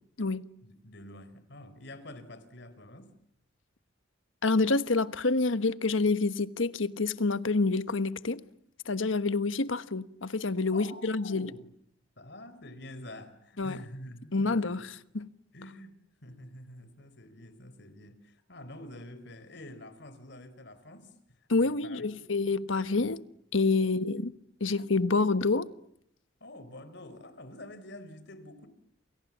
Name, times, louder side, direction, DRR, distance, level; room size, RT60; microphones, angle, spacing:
voice 1, 0.6-3.1 10.7-11.7 12.2-14.8 15.5-22.2 23.8-24.3 26.4-28.7, left 1 dB, 60° left, 4.3 m, -47 dB
voice 2, 4.4-8.4 8.8-11.5 13.6-13.8 14.3-15.3 21.5-23.2 23.5-24.3 24.6-25.7, left 3 dB, 85° left, 1.3 m, -27 dB
29.0 x 28.0 x 7.4 m
head